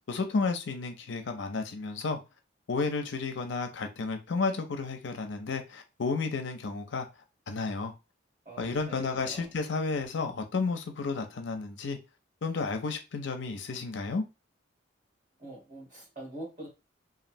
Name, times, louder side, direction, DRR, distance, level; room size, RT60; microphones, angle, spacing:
voice 1, 0.1-2.2 2.7-7.1 7.5-7.9 8.6-12.0 12.4-14.2, left 4 dB, 60° left, 0.5 m, -32 dB
voice 2, 8.4-9.5 15.4-16.7, right 1 dB, 40° right, 1.5 m, -44 dB
3.1 x 2.4 x 2.5 m
head